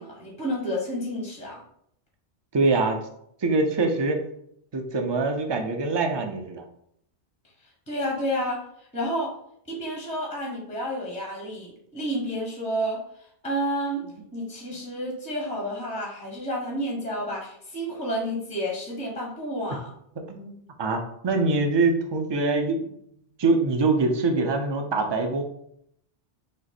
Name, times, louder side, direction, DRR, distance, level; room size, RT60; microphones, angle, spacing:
voice 1, 0.0-1.6 7.9-8.6 8.9-9.3 9.7-13.0 13.4-14.1 14.3-19.9, equal, 5° left, -3 dB, 0.8 m, -30 dB
voice 2, 2.5-3.0 3.4-4.2 4.7-6.6 14.1-14.2 20.3-22.9 23.4-25.4, right 3 dB, 35° right, 4 dB, 0.4 m, -24 dB
5.1 x 2.1 x 4.2 m, 0.72 s
omnidirectional pair, 1.1 m